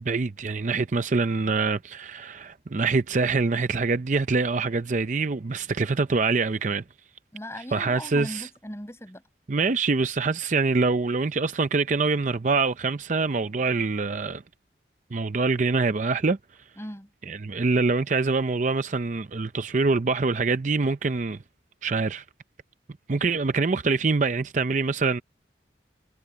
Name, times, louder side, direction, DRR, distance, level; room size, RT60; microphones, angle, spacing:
voice 1, 0.0-6.8 7.7-8.5 9.5-14.4 15.1-16.4 17.3-21.4 21.8-22.2 23.1-25.2, right 4 dB, 40° right, 0.5 m, -25 dB
voice 2, 7.3-9.2 16.8-17.1, equal, 15° left, 7.2 m, -38 dB
head